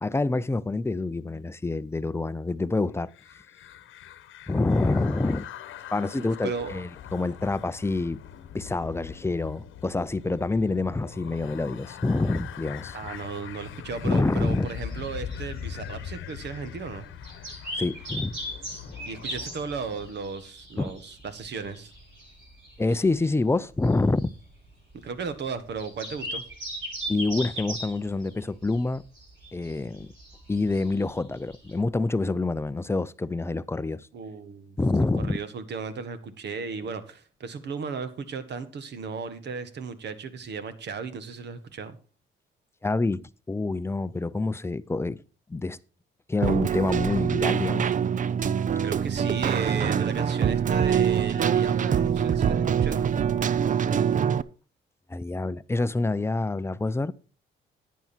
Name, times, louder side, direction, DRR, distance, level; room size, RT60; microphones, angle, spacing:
voice 1, 0.0-3.1 4.5-5.5 5.9-8.2 8.5-13.0 14.0-14.7 17.8-18.4 20.8-20.9 22.8-24.3 27.1-29.0 29.5-30.1 30.5-34.1 34.8-35.4 42.8-45.2 45.5-45.8 46.3-47.9 49.8-49.9 55.1-57.1, left 3 dB, 10° left, 0.5 m, -27 dB
sound 1, 3.1-20.1, left 9 dB, 80° left, 1.1 m, -42 dB
voice 2, 6.1-6.8 12.9-17.1 19.0-21.9 24.9-26.4 34.1-42.0 48.8-53.0, right 5 dB, 60° right, 1.6 m, -35 dB
sound 2, 14.7-31.7, equal, 80° right, 7.5 m, -39 dB
Keyboard (musical), 46.4-54.4, right 8 dB, 40° right, 0.5 m, -24 dB
10.5 x 9.3 x 4.4 m
cardioid pair, 90°, 20 cm